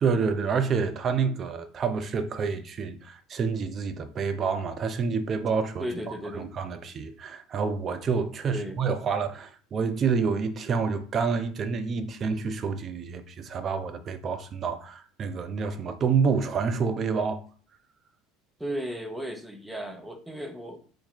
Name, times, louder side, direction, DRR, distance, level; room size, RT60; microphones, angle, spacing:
voice 1, 0.0-5.9 6.3-17.4, right 5 dB, 35° right, 0.6 m, -28 dB
voice 2, 5.8-6.6 8.5-8.8 18.6-20.9, equal, ahead, 0.8 m, -35 dB
4.7 x 2.2 x 4.3 m
figure-of-eight pair, 70°, 0 cm